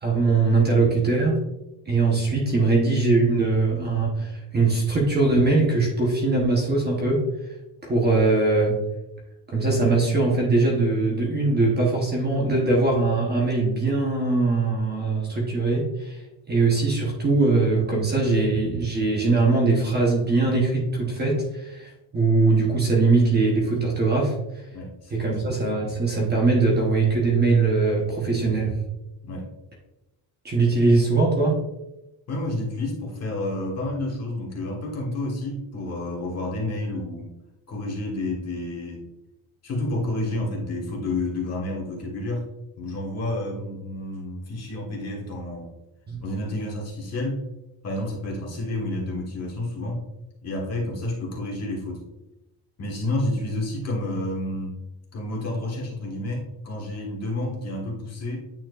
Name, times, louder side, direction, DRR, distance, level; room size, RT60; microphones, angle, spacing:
voice 1, 0.0-1.4 1.9-7.3 7.8-8.8 9.5-16.2 16.5-24.3 25.1-28.8 30.4-31.6 46.1-46.2, right 3 dB, 20° right, -2 dB, 1.0 m, -21 dB
voice 2, 24.7-25.3 29.2-29.5 32.3-37.3 37.7-39.0 39.6-42.4 42.8-45.7 46.2-47.4 47.8-50.0 50.4-52.0 52.8-54.8 55.1-58.4, left 1 dB, 30° left, -2 dB, 1.5 m, -30 dB
9.0 x 4.3 x 2.4 m, 0.94 s
cardioid pair, 180°, 47 cm